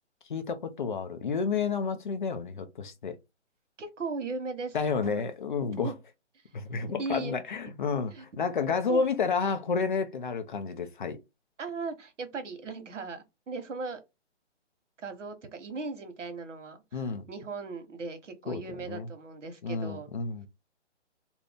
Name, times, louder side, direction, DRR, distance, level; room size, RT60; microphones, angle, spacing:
voice 1, 0.3-3.2 4.7-5.9 6.5-11.2 16.9-17.2 18.5-19.1 19.6-20.5, left 5 dB, 45° left, 0.6 m, -30 dB
voice 2, 3.8-4.8 5.0-5.3 5.8-5.9 7.0-7.4 8.1-8.2 8.9-9.0 11.6-14.0 15.0-17.0 17.3-20.1, right 4 dB, 85° right, 1.1 m, -37 dB
2.7 x 2.6 x 3.4 m
hypercardioid pair, 165°, 36 cm